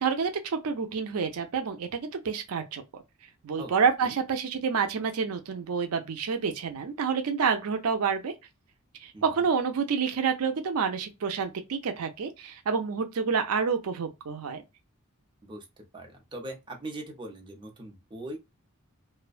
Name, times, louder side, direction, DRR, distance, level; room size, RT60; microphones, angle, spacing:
voice 1, 0.0-3.0 3.4-8.3 9.0-14.6, right 6 dB, 85° right, 0.5 m, -28 dB
voice 2, 15.9-18.4, right 1 dB, 20° right, 0.6 m, -40 dB
2.5 x 2.1 x 2.3 m
head